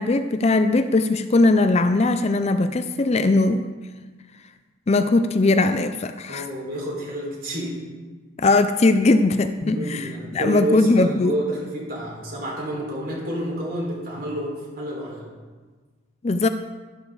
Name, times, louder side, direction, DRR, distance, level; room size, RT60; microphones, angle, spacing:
voice 1, 0.0-3.7 4.9-6.5 8.4-11.3 16.2-16.5, left 2 dB, 30° left, 10 dB, 0.4 m, -19 dB
voice 2, 6.3-7.7 9.6-15.2, right 1 dB, 45° right, -4 dB, 4.7 m, -29 dB
13.0 x 12.0 x 4.0 m, 1.4 s
head